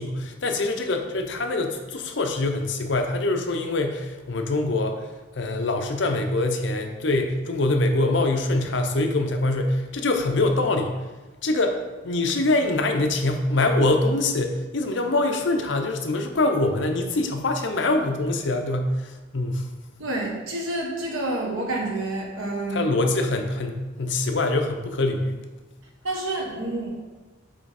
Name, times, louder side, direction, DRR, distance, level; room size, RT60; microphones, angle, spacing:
voice 1, 0.0-5.0 5.3-10.9 11.4-11.8 12.0-19.7 22.7-25.4, left 2 dB, 65° left, 5 dB, 0.7 m, -24 dB
voice 2, 20.0-22.9 26.0-27.0, right 2 dB, 90° right, -1 dB, 1.4 m, -28 dB
8.0 x 3.4 x 4.2 m, 1.2 s
head